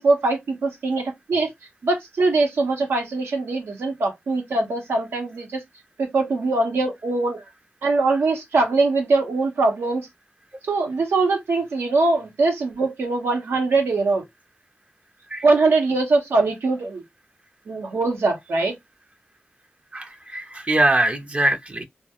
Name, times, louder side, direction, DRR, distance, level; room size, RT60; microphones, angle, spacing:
voice 1, 0.0-1.5 1.8-5.6 6.0-7.4 7.8-10.1 10.7-14.2 15.4-17.0 17.7-18.7, right 3 dB, 90° right, 0.7 m, -22 dB
voice 2, 19.9-21.8, right 1 dB, 35° right, 0.5 m, -22 dB
2.3 x 2.0 x 2.7 m
cardioid pair, 50°, 4 cm